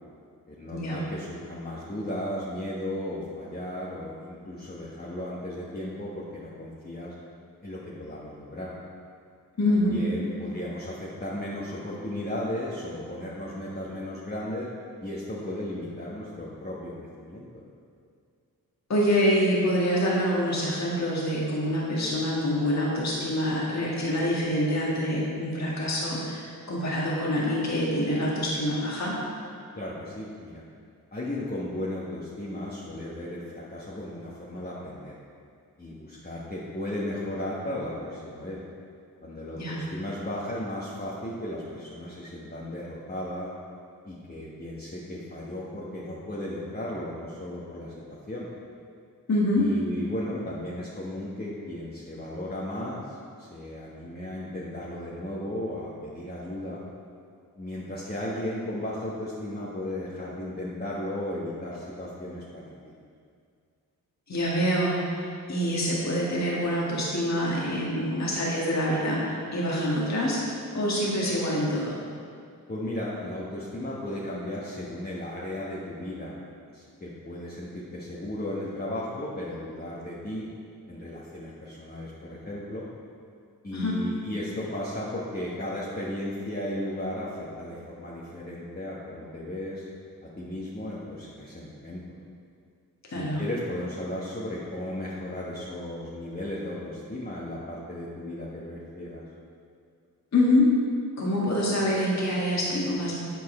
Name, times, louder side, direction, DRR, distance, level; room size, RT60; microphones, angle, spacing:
voice 1, 0.5-7.1 7.6-8.7 9.7-14.7 15.0-17.6 29.7-30.6 31.1-35.2 35.8-38.6 39.2-43.5 44.0-48.5 49.6-56.8 57.6-62.7 72.7-76.3 76.7-80.5 80.9-82.8 83.6-89.9 90.2-92.0 93.1-99.2, left 1 dB, 25° left, -7 dB, 1.3 m, -35 dB
voice 2, 9.6-10.0 18.9-29.1 39.6-39.8 49.3-49.6 64.3-70.4 70.7-72.0 83.7-84.0 93.1-93.4 100.3-100.7 101.2-103.2, left 1 dB, 40° left, -4 dB, 1.6 m, -26 dB
8.4 x 4.6 x 4.3 m, 2.3 s
supercardioid pair, 45°, 40 cm